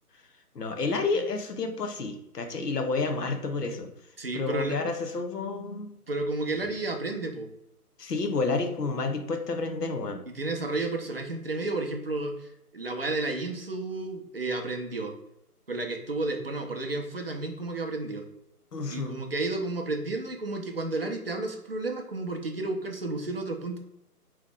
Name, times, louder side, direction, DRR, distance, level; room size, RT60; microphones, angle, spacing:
voice 1, 0.5-3.9 4.3-5.9 8.0-10.2 18.7-19.2, left 3 dB, 80° left, 5 dB, 0.8 m, -30 dB
voice 2, 4.2-4.9 6.1-7.5 10.3-15.1 15.7-18.2 18.9-23.8, right 2 dB, 40° right, 3 dB, 0.5 m, -32 dB
3.7 x 3.1 x 3.4 m, 0.80 s
figure-of-eight pair, 150°, 47 cm